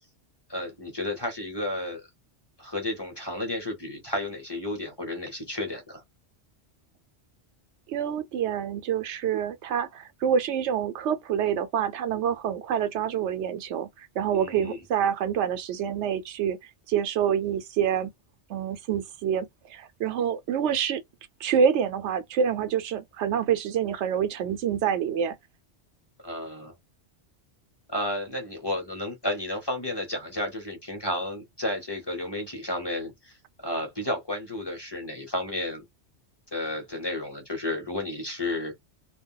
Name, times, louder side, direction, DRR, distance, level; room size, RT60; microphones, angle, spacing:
voice 1, 0.5-2.1 2.6-6.0 14.3-14.8 26.2-26.7 27.9-33.4 33.6-35.8 36.5-38.7, left 1 dB, 25° left, 0.7 m, -32 dB
voice 2, 7.9-13.9 14.2-16.6 16.9-18.1 18.5-21.0 21.4-25.4, right 8 dB, 80° right, 0.9 m, -27 dB
2.3 x 2.1 x 3.7 m
omnidirectional pair, 1.2 m